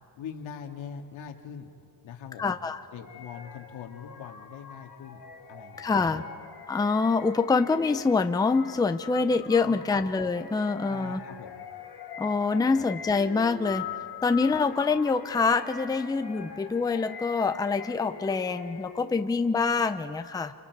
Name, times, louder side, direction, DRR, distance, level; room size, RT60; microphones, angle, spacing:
voice 1, 0.2-1.7 2.0-2.5 2.9-5.2 5.5-6.3 9.6-10.0 10.9-11.6 12.7-12.8, left 7 dB, 85° left, 3 dB, 2.1 m, -42 dB
voice 2, 2.4-2.8 5.8-6.2 6.7-11.2 12.2-13.8 14.2-20.5, left 4 dB, 10° left, 8 dB, 0.5 m, -25 dB
sound 1, 3.0-19.2, left 7 dB, 55° left, 1.8 m, -42 dB
29.0 x 27.0 x 4.8 m, 2.4 s
cardioid pair, 145°, 45 cm